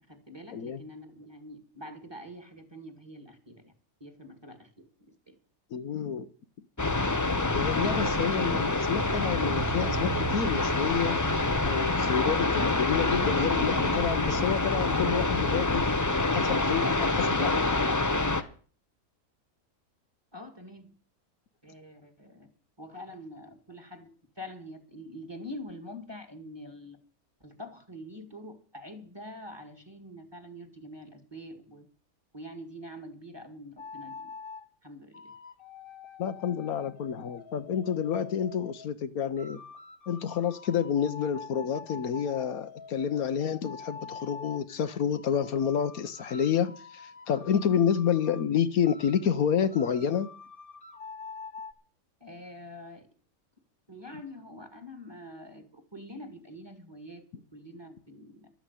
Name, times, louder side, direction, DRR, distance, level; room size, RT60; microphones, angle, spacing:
voice 1, 0.1-3.7 4.0-5.4 20.3-20.9 21.6-22.5 22.8-27.0 27.4-31.9 32.3-34.3 34.8-35.3 52.2-53.1 53.9-58.5, left 1 dB, 15° right, 2.1 m, -45 dB
voice 2, 5.7-6.3 7.5-11.2 11.6-15.9 16.3-17.6 36.2-39.6 40.1-50.3, left 8 dB, 75° left, 1.3 m, -29 dB
sound 1, 6.8-18.4, left 2 dB, 20° left, 0.6 m, -26 dB
sound 2, 33.8-34.6 35.1-38.9 39.4-44.7 45.1-48.5 48.8-51.7, left 5 dB, 40° left, 1.3 m, -46 dB
12.5 x 9.1 x 8.3 m
omnidirectional pair, 1.5 m